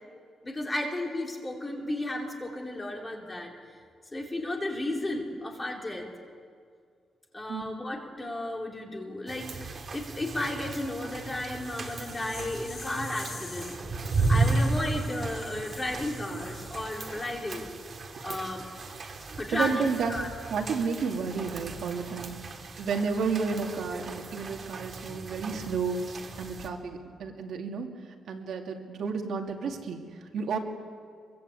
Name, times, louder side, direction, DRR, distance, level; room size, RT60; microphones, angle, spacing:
voice 1, 0.4-3.5 4.1-6.1 7.3-13.8 14.3-17.7 18.2-18.6 19.4-19.8 20.1-20.3, left 1 dB, 15° left, 0 dB, 3.2 m, -33 dB
sound 1, 9.3-26.7, right 3 dB, 35° right, 2.3 m, -34 dB
sound 2, 11.5-17.3, left 4 dB, 40° left, 2.1 m, -47 dB
voice 2, 19.5-20.2 20.5-22.4 22.8-26.0 26.4-27.9 28.3-30.6, right 5 dB, 65° right, 2 dB, 2.4 m, -31 dB
24.5 x 23.5 x 8.3 m, 2.1 s
wide cardioid pair, 170°, 0 cm